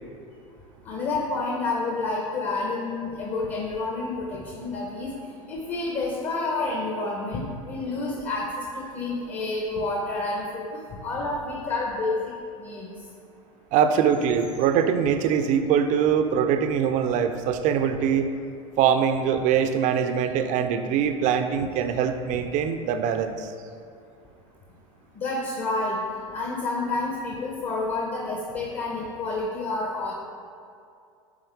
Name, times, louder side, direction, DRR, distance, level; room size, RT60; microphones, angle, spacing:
voice 1, 0.8-5.1 5.5-12.3 12.6-12.9 25.1-26.0 26.3-30.1, left 3 dB, 45° left, -3 dB, 1.1 m, -29 dB
voice 2, 13.7-18.3 18.8-23.5, right 8 dB, 45° right, 8 dB, 0.5 m, -23 dB
8.6 x 3.6 x 3.4 m, 2.4 s
hypercardioid pair, 90°, 17 cm